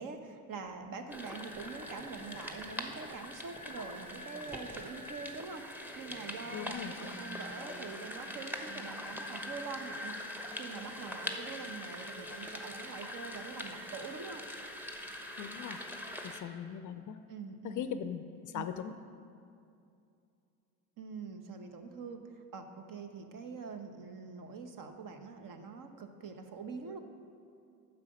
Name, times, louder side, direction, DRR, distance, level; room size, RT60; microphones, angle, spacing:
voice 1, 0.0-5.6 5.9-10.2 10.6-14.4 17.3-17.9 18.5-18.7 21.0-27.0, right 4 dB, 45° right, 6 dB, 1.0 m, -44 dB
sound 1, 1.1-16.4, left 1 dB, 5° right, 0.9 m, -43 dB
voice 2, 6.5-6.9 15.4-15.8 16.2-17.2 17.6-18.9, left 9 dB, 45° left, 11 dB, 0.5 m, -39 dB
9.5 x 6.9 x 5.2 m, 2.5 s
hypercardioid pair, 70°, 46 cm